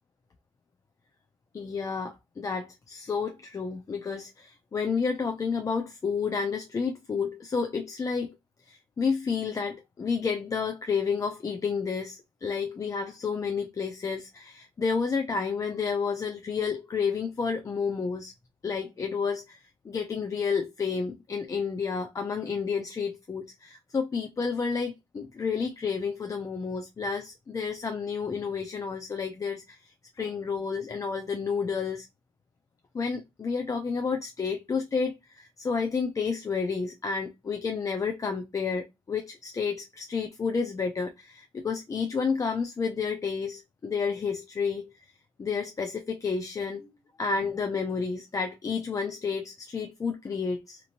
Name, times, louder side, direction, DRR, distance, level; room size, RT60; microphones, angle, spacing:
voice 1, 1.5-8.3 8.7-18.3 18.6-32.1 32.9-44.9 45.4-46.9 47.2-50.8, left 5 dB, 40° left, 0.5 m, -30 dB
3.0 x 2.6 x 2.5 m
cardioid pair, 70°, 9 cm